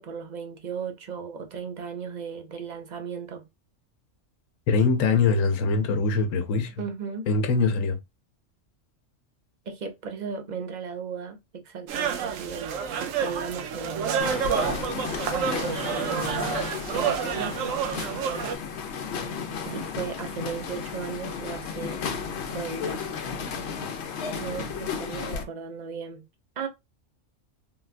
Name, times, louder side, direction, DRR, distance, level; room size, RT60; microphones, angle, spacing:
voice 1, 0.0-3.5 6.8-7.3 9.7-12.7 13.0-14.3 15.9-17.5 19.7-22.0 22.5-23.0 24.3-26.2 26.6-26.7, right 6 dB, 45° right, 0.6 m, -36 dB
voice 2, 4.7-6.8 7.3-8.0, left 4 dB, 90° left, 1.0 m, -23 dB
sound 1, 11.9-18.6, right 7 dB, 85° right, 1.0 m, -29 dB
sound 2, 14.2-25.4, left 6 dB, 65° left, 0.9 m, -33 dB
3.8 x 2.2 x 2.4 m
omnidirectional pair, 1.3 m